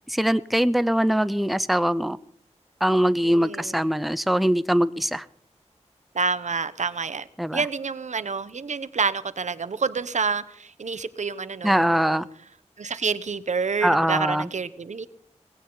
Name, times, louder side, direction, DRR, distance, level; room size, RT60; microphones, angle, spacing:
voice 1, 0.1-2.2 2.8-5.2 7.4-7.6 11.6-12.3 13.8-14.5, equal, ahead, 0.6 m, -22 dB
voice 2, 3.2-3.9 6.1-7.3 7.5-12.2 12.8-15.1, right 5 dB, 75° right, 1.0 m, -28 dB
19.0 x 16.0 x 4.0 m
wide cardioid pair, 85°, 12 cm